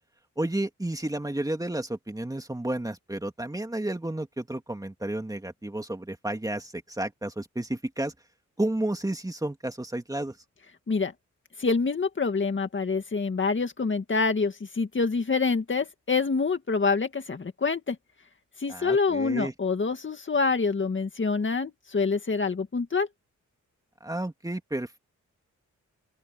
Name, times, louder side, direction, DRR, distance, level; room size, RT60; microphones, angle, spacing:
voice 1, 0.4-8.1 8.6-10.4 18.7-19.5 24.0-25.0, right 1 dB, 10° right, 2.5 m, -31 dB
voice 2, 11.6-18.0 18.6-23.1, left 4 dB, 40° left, 2.0 m, -26 dB
open air
cardioid pair, 95°, 31 cm